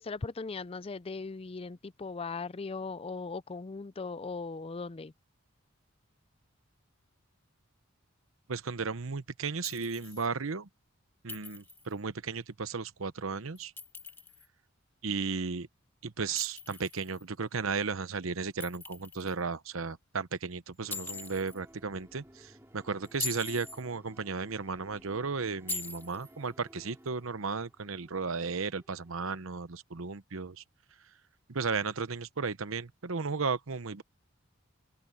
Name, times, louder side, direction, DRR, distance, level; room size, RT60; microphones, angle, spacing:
voice 1, 0.0-5.1, left 4 dB, 25° left, 0.4 m, -38 dB
voice 2, 8.5-10.7 11.2-13.7 15.0-15.7 16.0-30.6 31.5-34.0, right 4 dB, 75° right, 0.9 m, -35 dB
Chink clink, 9.6-10.3 11.3-11.9 13.6-14.5 16.4-17.2 18.6-19.3 20.9-21.6 23.0-23.8 25.7-26.3, left 3 dB, 10° left, 2.0 m, -41 dB
sound 1, 20.8-29.4, right 1 dB, 10° right, 4.0 m, -58 dB
head